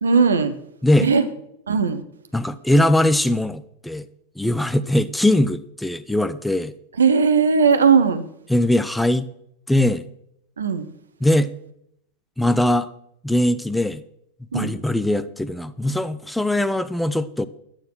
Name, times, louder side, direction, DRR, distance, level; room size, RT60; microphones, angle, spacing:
voice 1, 0.0-0.5 1.0-1.2 1.7-2.0 7.0-8.2 10.6-10.9 14.5-14.7, right 5 dB, 70° right, 10 dB, 1.1 m, -17 dB
voice 2, 2.3-4.1 4.4-6.7 8.5-9.3 9.7-10.0 11.2-11.5 12.4-12.9 13.2-14.0 14.5-17.5, left 1 dB, 5° left, 13 dB, 0.5 m, -20 dB
12.0 x 8.9 x 6.2 m, 0.74 s
figure-of-eight pair, 90°, 0 cm